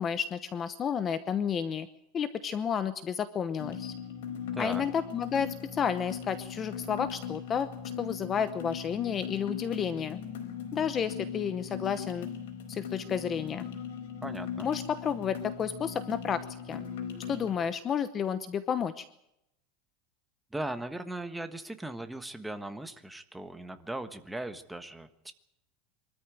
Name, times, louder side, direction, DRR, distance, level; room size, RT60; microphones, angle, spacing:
voice 1, 0.0-1.9 2.1-3.9 4.6-7.7 8.0-10.2 10.7-12.3 12.7-13.7 14.6-16.9 17.3-19.0, left 7 dB, 20° left, 13 dB, 0.9 m, -31 dB
sound 1, 3.6-17.6, left 7 dB, 90° left, 4.8 m, -39 dB
voice 2, 14.2-14.7 20.5-25.3, right 1 dB, 5° right, 8 dB, 1.4 m, -38 dB
24.0 x 13.5 x 9.3 m, 0.80 s
supercardioid pair, 165°, 0 cm